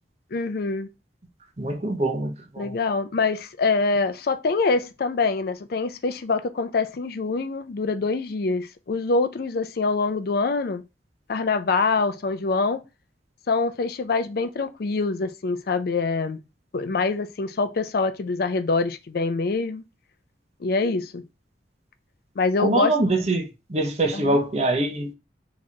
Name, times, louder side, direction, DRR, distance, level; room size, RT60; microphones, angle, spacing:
voice 1, 0.3-0.9 2.6-10.8 11.3-12.8 13.5-16.4 16.7-19.9 20.6-21.3 22.4-23.0 24.1-24.4, left 4 dB, 55° left, 0.4 m, -25 dB
voice 2, 1.6-2.7 22.6-25.1, right 2 dB, 35° right, 0.7 m, -24 dB
3.0 x 2.5 x 4.2 m
head